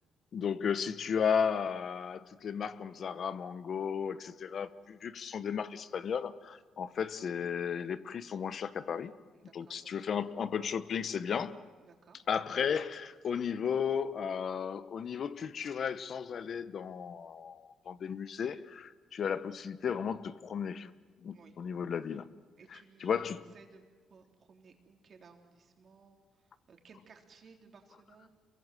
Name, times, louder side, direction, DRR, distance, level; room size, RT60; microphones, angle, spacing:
voice 1, 0.3-9.1 9.5-11.6 12.3-20.9 21.2-22.3 23.0-23.4, left 7 dB, 55° left, 14 dB, 0.9 m, -34 dB
voice 2, 9.3-10.5 11.8-12.2 21.3-21.6 22.6-28.3, right 5 dB, 50° right, 3 dB, 3.7 m, -59 dB
26.5 x 22.5 x 7.7 m, 1.4 s
cardioid pair, 90°, 0 cm